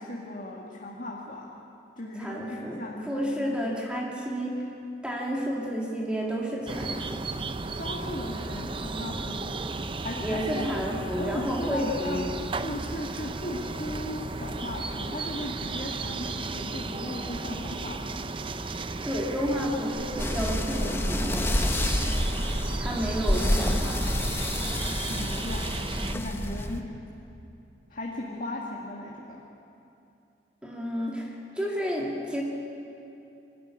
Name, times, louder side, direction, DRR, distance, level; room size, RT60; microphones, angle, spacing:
voice 1, 0.0-1.5 2.0-3.7 7.7-9.5 10.0-10.5 11.2-12.3 12.6-18.2 25.1-25.7 26.1-26.8 27.9-29.4, left 1 dB, 50° left, -3 dB, 2.1 m, -37 dB
voice 2, 2.2-4.6 5.0-7.2 10.2-12.3 19.0-22.2 22.8-24.1 30.6-32.4, equal, 5° right, -2 dB, 2.2 m, -31 dB
sound 1, 6.7-26.2, right 3 dB, 30° right, 0.6 m, -34 dB
sound 2, 20.2-26.8, left 1 dB, 15° left, 1.0 m, -28 dB
24.5 x 13.5 x 9.7 m, 2.7 s
head